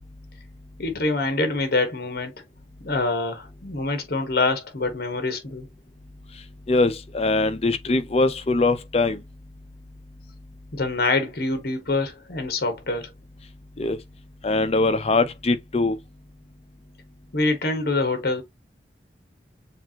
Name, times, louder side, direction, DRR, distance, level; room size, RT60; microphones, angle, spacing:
voice 1, 0.8-2.3 2.8-5.7 10.7-13.1 17.3-18.4, left 3 dB, 55° left, 1.3 m, -25 dB
voice 2, 6.7-9.2 13.8-14.0 14.4-16.0, left 3 dB, 35° left, 0.5 m, -22 dB
6.9 x 2.5 x 2.8 m
head